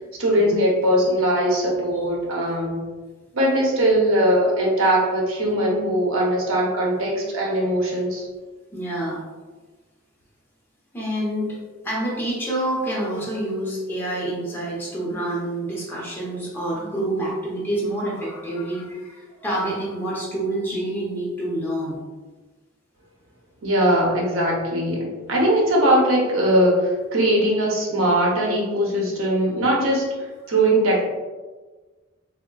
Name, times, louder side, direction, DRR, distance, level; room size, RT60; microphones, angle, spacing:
voice 1, 0.2-2.9 3.3-8.3 23.6-30.1 30.5-31.0, right 1 dB, 90° right, -2 dB, 0.7 m, -20 dB
voice 2, 8.7-9.2 10.9-11.6 11.8-22.0, right 1 dB, 10° left, -6 dB, 0.7 m, -27 dB
3.5 x 2.1 x 2.2 m, 1.3 s
head